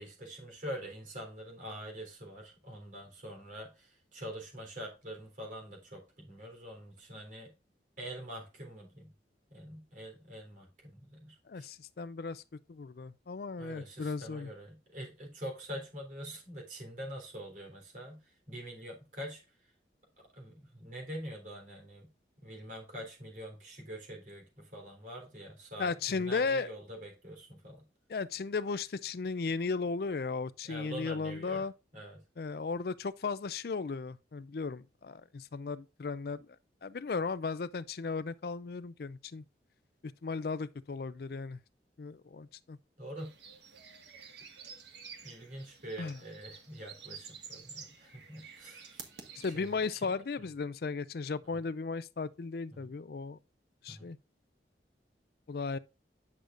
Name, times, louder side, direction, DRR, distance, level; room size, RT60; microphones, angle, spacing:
voice 1, 0.0-7.5 8.0-9.1 9.5-11.7 13.6-19.7 20.3-22.1 22.4-27.8 30.6-31.6 31.9-32.2 43.0-43.3 45.2-49.0 49.5-50.1 52.7-52.8 53.9-54.1, equal, 45° right, 3.7 m, -45 dB
voice 2, 11.5-12.4 12.7-14.5 25.8-26.7 28.1-31.7 32.4-36.6 36.8-39.4 40.0-41.6 42.0-42.8 46.0-46.2 49.4-53.4 53.8-54.2 55.5-55.8, left 4 dB, 60° left, 0.4 m, -36 dB
sound 1, 43.2-49.9, right 6 dB, 80° right, 1.6 m, -50 dB
9.9 x 6.3 x 2.5 m
head